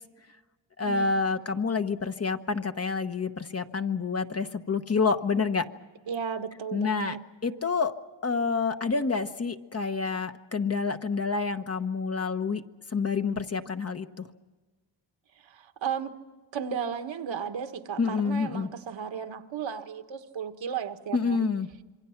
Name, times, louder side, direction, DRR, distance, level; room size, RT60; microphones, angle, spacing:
voice 1, 0.8-5.6 6.7-7.2 7.4-7.9 8.2-12.6 12.9-14.3 18.0-18.7 21.1-21.7, left 4 dB, 30° left, 8 dB, 1.1 m, -28 dB
voice 2, 6.1-7.2 15.4-16.2 16.5-21.5, right 7 dB, 70° right, 8 dB, 1.7 m, -34 dB
27.5 x 23.5 x 5.9 m, 1.3 s
cardioid pair, 100°, 47 cm